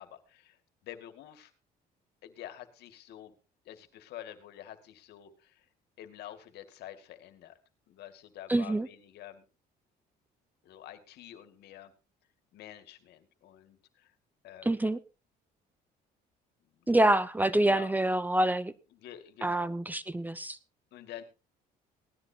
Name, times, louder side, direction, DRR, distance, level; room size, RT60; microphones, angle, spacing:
voice 1, 0.0-1.5 2.2-3.3 3.6-5.7 6.0-7.6 7.9-9.4 10.6-11.9 12.5-14.2 14.4-14.9 16.6-16.9 17.5-17.9 18.9-19.8 20.9-21.2, left 12 dB, 75° left, 2.2 m, -48 dB
voice 2, 8.5-8.9 14.7-15.0 16.9-18.7 19.4-20.6, right 1 dB, 10° right, 0.7 m, -26 dB
18.5 x 13.0 x 2.9 m
cardioid pair, 110°, 17 cm